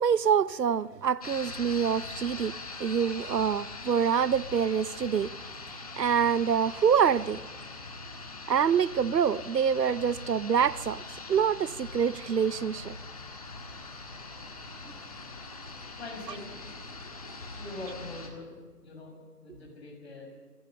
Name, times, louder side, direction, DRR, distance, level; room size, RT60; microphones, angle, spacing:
voice 1, 0.0-5.3 6.0-7.4 8.5-11.0 11.3-12.9, right 7 dB, 90° right, 0.8 m, -26 dB
sound 1, 1.2-18.3, left 3 dB, 25° left, 1.5 m, -42 dB
voice 2, 16.0-16.5 17.5-18.5 18.8-20.3, left 2 dB, 40° left, 6.5 m, -43 dB
27.0 x 15.5 x 6.7 m
figure-of-eight pair, 170°, 48 cm